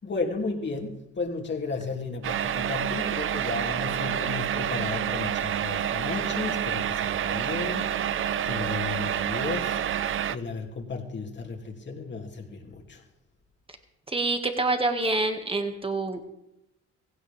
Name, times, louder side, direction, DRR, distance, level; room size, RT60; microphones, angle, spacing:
voice 1, 0.0-9.8 10.3-13.0, left 4 dB, 40° left, 1 dB, 2.8 m, -34 dB
sound 1, 2.2-10.4, right 9 dB, 45° right, 0.5 m, -28 dB
voice 2, 14.1-16.2, right 2 dB, 20° right, 6 dB, 2.0 m, -26 dB
16.5 x 16.0 x 3.6 m, 0.86 s
cardioid pair, 90°, 30 cm